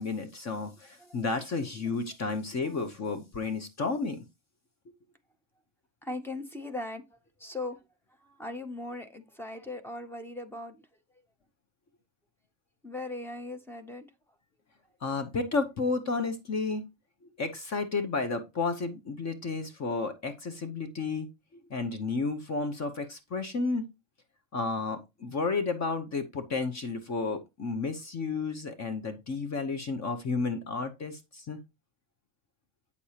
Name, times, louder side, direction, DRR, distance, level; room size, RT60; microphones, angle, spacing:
voice 1, 0.0-4.2 15.0-16.8 17.4-21.3 21.7-23.9 24.5-31.6, left 4 dB, 35° left, 0.8 m, -32 dB
voice 2, 6.0-7.0 7.4-7.8 8.2-10.9 12.8-14.1, left 2 dB, 5° left, 0.5 m, -39 dB
8.4 x 6.6 x 2.8 m
cardioid pair, 175°, 47 cm